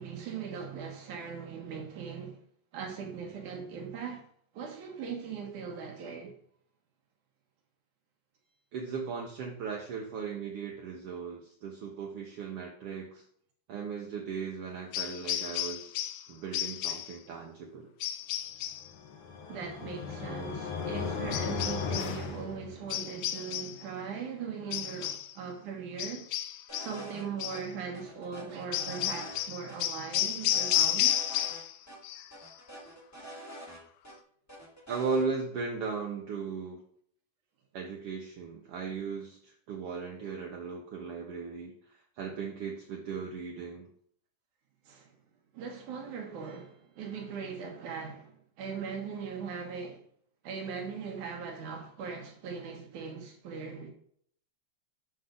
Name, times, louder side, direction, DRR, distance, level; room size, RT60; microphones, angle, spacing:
voice 1, 0.0-2.4 2.7-4.3 4.5-6.3 19.5-26.3 26.7-31.3 33.2-33.3 44.9-45.1 45.5-50.0 50.4-53.9, right 6 dB, 85° right, 3.0 m, -40 dB
voice 2, 8.7-13.2 13.7-16.0 16.3-17.9 34.9-36.8 37.7-41.8 42.2-43.9, right 5 dB, 65° right, 1.5 m, -37 dB
sound 1, 14.9-16.3 16.5-17.2 18.0-18.9 21.3-22.2 22.9-23.8 24.7-25.3 26.0-27.0 27.4-27.7 28.7-31.8 32.0-32.5, left 12 dB, 80° left, 1.9 m, -32 dB
sound 2, 18.8-23.1, left 5 dB, 60° left, 1.5 m, -36 dB
sound 3, 26.7-27.2 27.5-27.6 27.9-29.4 29.7-29.8 30.1-31.6 31.9-32.0 32.3-34.1 34.5-35.3, right 1 dB, 10° left, 0.9 m, -46 dB
7.8 x 6.3 x 3.8 m
omnidirectional pair, 3.4 m